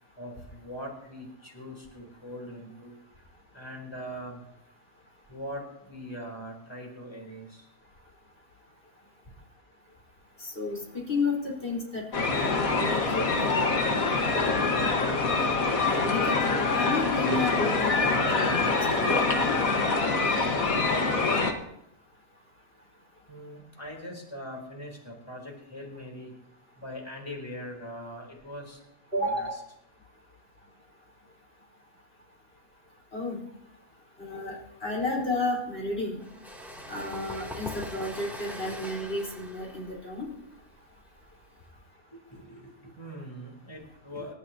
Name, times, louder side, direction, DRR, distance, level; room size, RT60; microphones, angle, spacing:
voice 1, 0.2-2.9 3.5-4.4 5.3-7.6 23.3-26.3 26.8-28.8 29.2-29.5 42.1-44.3, equal, 15° left, 0 dB, 3.8 m, -41 dB
voice 2, 10.4-12.1 12.4-13.6 13.9-14.4 15.9-19.2 19.4-19.5 29.1-29.6 33.1-33.4 34.2-34.5 34.8-36.2 36.9-40.3, left 2 dB, 40° left, -3 dB, 4.8 m, -32 dB
sound 1, 12.1-21.5, left 3 dB, 65° left, 2.0 m, -25 dB
sound 2, 36.2-41.7, equal, ahead, 2.8 m, -42 dB
27.5 x 13.0 x 2.9 m, 0.77 s
omnidirectional pair, 1.6 m